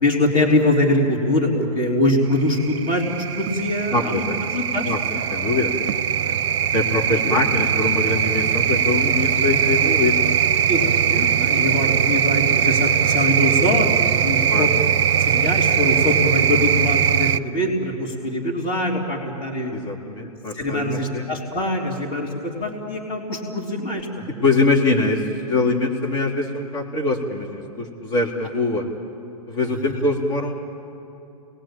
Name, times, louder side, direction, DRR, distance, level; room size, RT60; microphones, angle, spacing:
voice 1, 0.0-3.0 3.3-4.9 6.2-6.4 7.2-7.4 10.7-14.7 15.2-19.7 20.5-24.4 29.6-29.8, left 1 dB, 25° left, 1 dB, 3.5 m, -23 dB
sound 1, 2.4-17.4, right 9 dB, 50° right, 0.6 m, -20 dB
voice 2, 3.9-4.4 4.9-5.0 5.3-5.7 6.7-10.3 14.5-14.7 19.7-21.3 24.4-25.2 25.5-28.8 29.5-30.5, left 3 dB, 45° left, -1 dB, 3.4 m, -23 dB
29.0 x 20.5 x 9.0 m, 2.8 s
hypercardioid pair, 135°, 19 cm